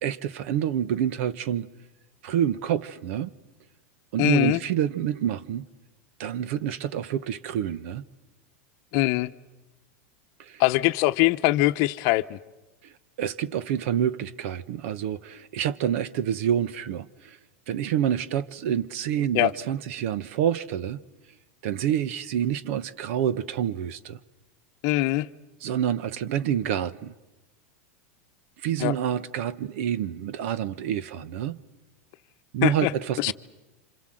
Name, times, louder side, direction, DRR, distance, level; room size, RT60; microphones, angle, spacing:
voice 1, 0.0-1.7 2.2-3.3 4.1-5.7 6.2-8.0 10.4-10.6 12.8-12.9 13.2-17.4 17.7-21.0 21.6-24.2 25.6-27.1 28.6-31.6 32.5-33.3, right 10 dB, 60° right, 1.2 m, -27 dB
voice 2, 4.2-4.6 8.9-9.3 10.6-12.4 19.3-19.5 24.8-25.3 28.8-29.0 32.6-32.9 33.2-33.3, left 18 dB, 45° left, 1.0 m, -22 dB
28.5 x 26.5 x 7.8 m
supercardioid pair, 145°, 8 cm